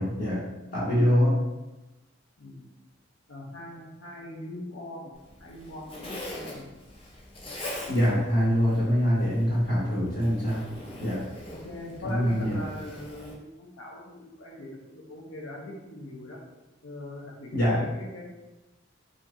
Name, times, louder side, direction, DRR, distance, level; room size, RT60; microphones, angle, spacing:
voice 1, 0.0-1.4 7.9-10.6 11.0-11.2 12.0-12.6 17.5-17.9, equal, 55° left, -7 dB, 0.9 m, -24 dB
voice 2, 3.3-5.1 5.4-6.7 9.8-9.9 11.5-16.4 16.8-18.2, left 1 dB, 85° left, -2 dB, 0.7 m, -41 dB
Zipper (clothing), 5.1-13.3, left 1 dB, 30° left, 0.6 m, -42 dB
2.8 x 2.6 x 3.5 m, 1.0 s
head